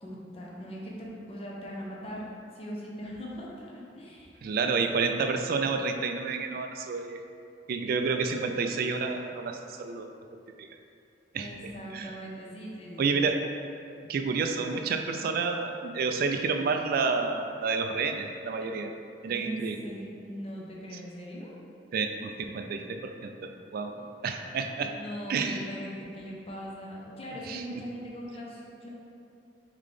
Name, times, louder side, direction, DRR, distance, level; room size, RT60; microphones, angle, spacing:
voice 1, 0.0-2.2 2.5-4.9 11.4-13.2 19.3-21.5 23.9-24.1 24.8-28.9, equal, 35° left, -4 dB, 0.6 m, -40 dB
voice 2, 4.4-7.2 7.7-10.1 10.6-10.7 11.3-11.5 11.9-12.1 13.0-13.4 14.0-18.9 19.2-19.9 21.9-23.9 24.2-24.9 25.3-25.6 27.4-27.6, right 4 dB, 55° right, 6 dB, 0.3 m, -29 dB
3.8 x 3.6 x 3.2 m, 2.5 s
head